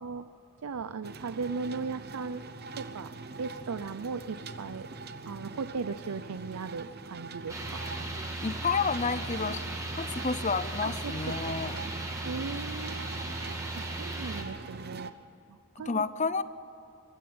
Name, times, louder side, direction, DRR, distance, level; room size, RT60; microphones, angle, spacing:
voice 1, 0.6-2.4 2.8-4.9 5.3-7.8 10.8-11.1 11.4-11.9 12.3-13.1 13.7-15.1 15.5-16.0, right 4 dB, 85° right, 12 dB, 0.5 m, -37 dB
sound 1, 1.0-15.1, right 3 dB, 45° right, 0.9 m, -43 dB
sound 2, 7.5-14.4, right 2 dB, 15° right, 2.2 m, -37 dB
voice 2, 8.4-9.6 10.0-11.7 15.9-16.4, left 4 dB, 35° left, 14 dB, 0.7 m, -30 dB
23.5 x 13.0 x 8.8 m, 2.8 s
head